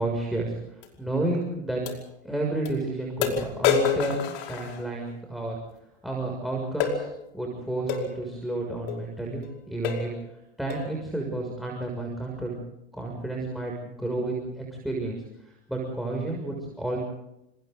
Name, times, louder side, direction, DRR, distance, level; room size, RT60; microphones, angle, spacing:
voice 1, 0.0-1.8 2.2-5.5 6.0-7.1 7.3-10.1 10.6-12.5 12.9-17.0, right 2 dB, ahead, 1 dB, 6.6 m, -31 dB
sound 1, 0.8-0.9 1.9-2.0 2.7-2.8 3.2-5.2 6.8-7.0 7.9-8.1 8.9-9.0 9.4-9.5 9.8-10.1 10.7-10.9, left 7 dB, 50° left, 5.1 m, -27 dB
30.0 x 28.0 x 4.0 m, 0.86 s
figure-of-eight pair, 90°, 34 cm